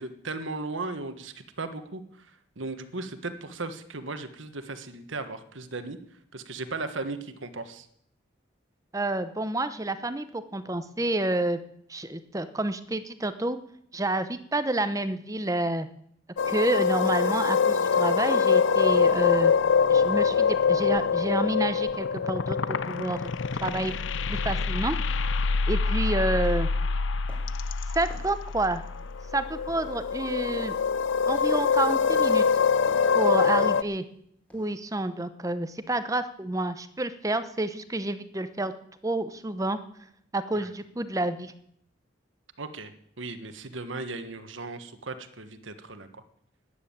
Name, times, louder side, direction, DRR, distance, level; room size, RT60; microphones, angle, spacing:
voice 1, 0.0-6.0 6.3-7.9 33.6-33.7 40.5-40.7 42.6-46.2, right 3 dB, 80° right, 9 dB, 1.5 m, -37 dB
voice 2, 8.9-11.6 11.9-13.6 13.9-15.9 16.5-19.5 19.9-23.3 23.6-23.9 24.3-25.2 25.7-26.7 27.9-28.8 29.3-30.7 31.3-32.4 33.1-34.0 34.5-38.7 39.0-39.8 40.3-41.5, right 2 dB, 15° right, 11 dB, 0.8 m, -29 dB
sound 1, 16.4-33.8, left 5 dB, 75° left, 0.5 m, -25 dB
sound 2, 25.9-26.0 26.3-26.9 27.3-27.7 28.1-29.3 29.7-30.1 30.5-30.8 31.1-31.6 32.1-32.4 32.9-33.3 33.7-34.0 34.5-34.7, equal, 5° left, 3.4 m, -53 dB
13.0 x 10.0 x 8.8 m, 0.68 s
head